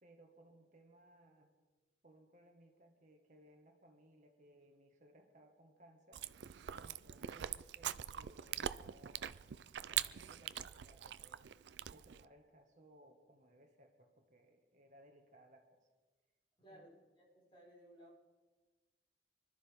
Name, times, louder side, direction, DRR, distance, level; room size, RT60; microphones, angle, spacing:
voice 1, 0.0-1.5 2.0-6.2 6.8-9.3 9.7-11.4 11.9-15.7 16.7-16.9, right 1 dB, 45° right, 3 dB, 1.7 m, -64 dB
Chewing mastication, 6.1-12.3, right 10 dB, 75° right, 0.4 m, -43 dB
voice 2, 16.6-18.2, equal, 30° left, -5 dB, 5.4 m, -60 dB
25.0 x 12.5 x 3.6 m, 1.3 s
head